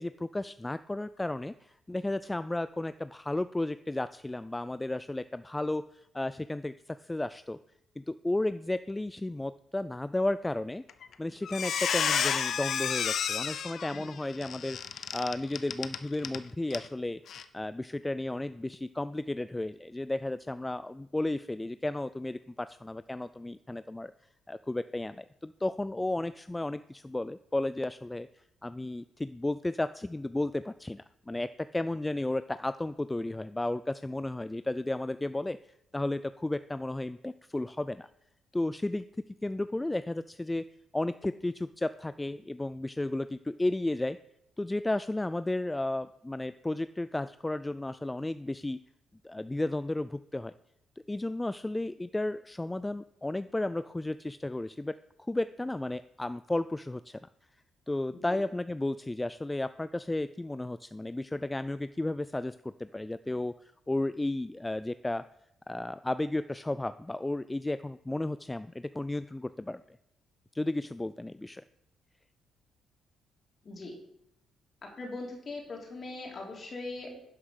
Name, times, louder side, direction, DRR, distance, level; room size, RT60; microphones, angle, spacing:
voice 1, 0.0-7.6 8.0-10.8 11.2-14.8 15.1-17.2 17.5-24.1 24.5-28.3 28.6-38.1 38.5-39.0 39.4-40.6 40.9-44.2 44.6-48.8 49.2-50.5 51.1-57.2 57.9-65.2 65.7-70.0 70.5-71.6, left 2 dB, 15° left, 14 dB, 0.3 m, -33 dB
Squeak, 10.9-11.1 11.4-16.4 16.7-16.9 17.3-17.4, left 8 dB, 60° left, 0.7 m, -31 dB
voice 2, 73.6-74.0 74.8-77.2, left 2 dB, 40° left, 0 dB, 3.5 m, -41 dB
11.0 x 5.8 x 6.5 m, 0.80 s
cardioid pair, 90°, 0 cm